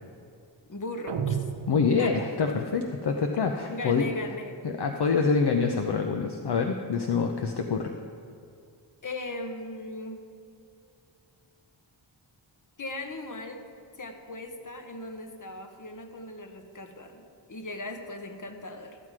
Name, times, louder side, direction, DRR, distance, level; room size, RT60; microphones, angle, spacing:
voice 1, 0.7-1.4 2.0-2.2 3.7-4.6 9.0-10.3 12.8-13.6 14.0-19.0, left 2 dB, 40° left, 5 dB, 1.2 m, -38 dB
sound 1, 1.1-2.5, right 7 dB, 90° right, 0.8 m, -32 dB
voice 2, 1.7-4.1 4.6-7.9, left 5 dB, 55° left, 4 dB, 0.8 m, -26 dB
13.5 x 7.5 x 4.8 m, 2.5 s
wide cardioid pair, 70°, 47 cm